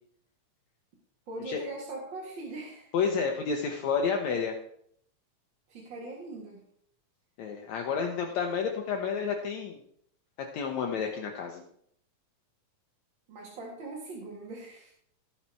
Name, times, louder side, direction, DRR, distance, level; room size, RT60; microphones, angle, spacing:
voice 1, 1.3-2.9 5.7-6.6 13.3-14.9, right 2 dB, 40° right, -3 dB, 2.2 m, -41 dB
voice 2, 2.9-4.6 7.4-9.8 10.5-11.6, left 6 dB, 70° left, 3 dB, 2.1 m, -30 dB
17.0 x 5.8 x 4.5 m, 0.67 s
omnidirectional pair, 3.7 m